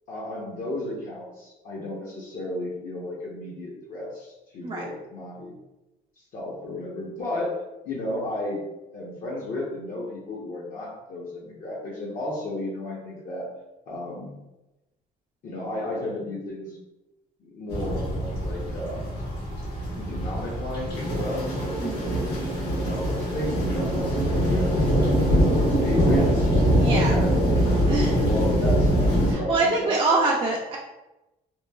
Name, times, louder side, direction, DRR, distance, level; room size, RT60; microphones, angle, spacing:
voice 1, 0.1-5.5 6.3-7.6 7.8-8.6 8.9-13.5 13.9-14.4 15.4-16.8 17.4-19.1 20.0-25.1 25.7-27.7 28.0-30.2, left 2 dB, 55° left, -4 dB, 0.7 m, -33 dB
sound 1, 17.7-29.3, equal, 90° left, 1.2 m, -23 dB
voice 2, 21.8-22.1 26.8-27.1 27.9-28.2 29.3-30.8, right 3 dB, 30° right, -3 dB, 0.4 m, -25 dB
3.0 x 2.2 x 2.2 m, 0.97 s
cardioid pair, 110°, 17 cm